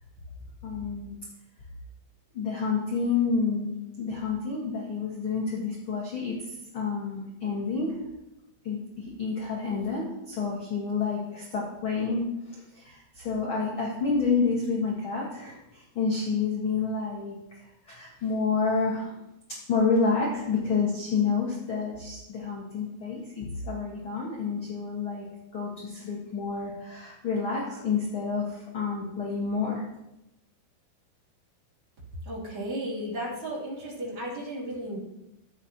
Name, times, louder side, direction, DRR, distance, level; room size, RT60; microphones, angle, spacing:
voice 1, 0.6-1.1 2.3-6.4 6.7-8.0 8.6-19.1 19.7-25.2 25.5-29.8, left 4 dB, 50° left, -4 dB, 1.6 m, -29 dB
voice 2, 32.2-35.0, right 1 dB, 35° right, -7 dB, 3.6 m, -34 dB
13.0 x 8.0 x 3.0 m, 0.90 s
omnidirectional pair, 4.6 m